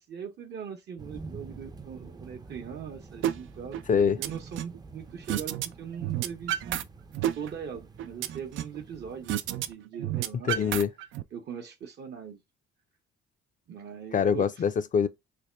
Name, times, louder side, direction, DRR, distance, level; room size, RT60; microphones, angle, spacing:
voice 1, 0.0-3.8 4.2-6.9 7.4-10.6 11.3-12.4 13.7-14.5, right 7 dB, 60° right, 0.8 m, -40 dB
sound 1, 1.0-9.7, right 3 dB, 20° right, 0.5 m, -47 dB
sound 2, 3.2-3.4 3.7-4.8 5.3-5.7 5.9-6.8 7.1-8.8 9.3-9.7 9.9-11.2, right 12 dB, 80° right, 0.4 m, -30 dB
voice 2, 3.9-4.2 10.5-10.9 14.1-15.1, left 7 dB, 40° left, 0.5 m, -24 dB
3.4 x 2.1 x 4.3 m
cardioid pair, 90°, 20 cm